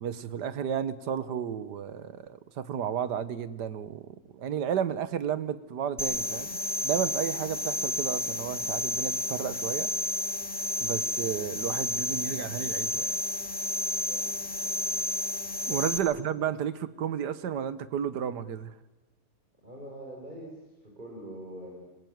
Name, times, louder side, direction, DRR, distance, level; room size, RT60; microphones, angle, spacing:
voice 1, 0.0-9.9 10.8-13.2 15.7-18.7, right 8 dB, 90° right, 14 dB, 1.7 m, -32 dB
sound 1, 6.0-16.0, left 1 dB, 5° left, 2.2 m, -31 dB
voice 2, 14.1-14.7 15.7-15.9 19.6-21.8, right 1 dB, 25° right, -2 dB, 5.2 m, -44 dB
25.5 x 21.0 x 9.2 m, 1.1 s
omnidirectional pair, 1.7 m